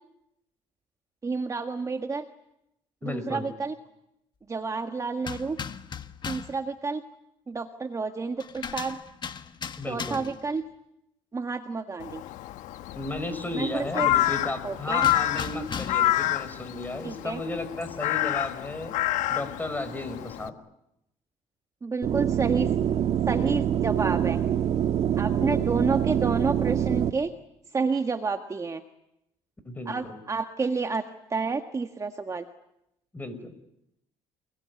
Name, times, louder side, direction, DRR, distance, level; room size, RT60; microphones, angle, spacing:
voice 1, 1.2-2.2 3.0-3.8 4.5-5.6 6.2-7.0 7.5-9.0 9.9-10.6 11.3-12.2 13.5-14.1 14.6-15.1 17.0-17.4 21.8-22.7 23.3-24.4 25.2-27.3 27.7-28.8 29.8-31.0 31.3-32.5, right 4 dB, 25° right, 6 dB, 1.6 m, -29 dB
voice 2, 3.0-3.5 9.8-10.2 13.0-18.9 19.3-20.5 25.3-25.9 29.6-30.2 33.1-33.5, left 2 dB, 15° left, 11 dB, 5.8 m, -34 dB
sound 1, 5.2-6.6 8.4-10.5 15.0-16.2, left 6 dB, 35° left, 1.5 m, -37 dB
Crow, 12.0-20.5, left 14 dB, 75° left, 1.3 m, -28 dB
sound 2, 22.0-27.1, right 10 dB, 55° right, 1.5 m, -25 dB
29.5 x 20.5 x 9.8 m, 0.83 s
cardioid pair, 100°, 13 cm